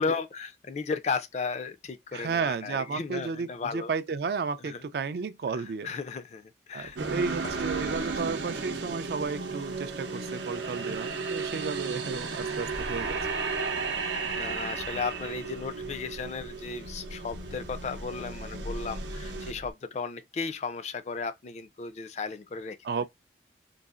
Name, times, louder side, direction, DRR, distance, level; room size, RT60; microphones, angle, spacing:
voice 1, 0.0-3.9 4.6-4.8 5.8-7.2 7.7-8.1 13.8-23.1, left 4 dB, 40° left, 0.3 m, -35 dB
voice 2, 2.1-5.9 6.7-13.2 22.8-23.1, right 5 dB, 60° right, 0.3 m, -33 dB
sound 1, 6.8-19.7, left 1 dB, 70° left, 0.7 m, -45 dB
sound 2, 7.0-19.5, right 4 dB, 85° right, 0.7 m, -34 dB
3.9 x 2.4 x 2.4 m
head